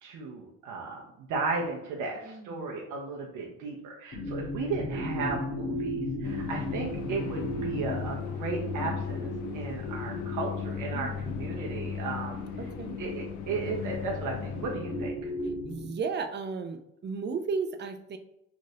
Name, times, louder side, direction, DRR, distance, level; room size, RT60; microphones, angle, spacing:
voice 1, 0.0-12.4 13.0-15.1, right 4 dB, 90° right, -1 dB, 0.6 m, -35 dB
voice 2, 2.2-3.0 4.9-5.2 10.9-11.3 12.6-13.0 15.6-18.2, right 5 dB, 35° right, 8 dB, 0.4 m, -35 dB
sound 1, 4.1-15.8, left 1 dB, 55° left, 1.1 m, -36 dB
sound 2, 6.2-15.1, left 8 dB, 70° left, 0.5 m, -37 dB
3.0 x 2.5 x 2.6 m, 0.81 s
cardioid pair, 90°, 30 cm